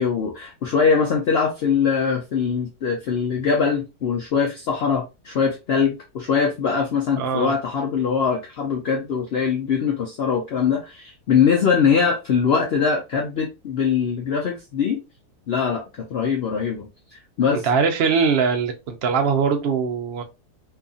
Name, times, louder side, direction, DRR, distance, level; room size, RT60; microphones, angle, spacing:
voice 1, 0.0-15.0 15.5-17.7, left 6 dB, 70° left, 0.6 m, -22 dB
voice 2, 7.1-7.5 17.5-20.2, right 5 dB, 85° right, 0.5 m, -21 dB
2.7 x 2.4 x 2.5 m
omnidirectional pair, 1.7 m